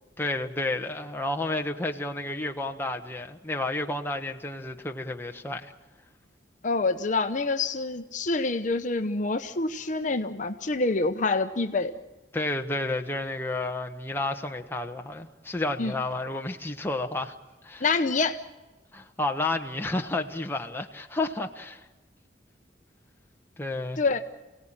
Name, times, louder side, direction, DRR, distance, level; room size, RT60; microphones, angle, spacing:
voice 1, 0.2-5.7 12.3-17.3 17.6-17.8 18.9-21.8 23.6-24.0, left 2 dB, 15° left, 1.2 m, -31 dB
voice 2, 6.6-11.9 15.8-15.9 17.8-18.4 24.0-24.2, left 3 dB, 45° left, 0.9 m, -26 dB
28.5 x 17.5 x 8.9 m
head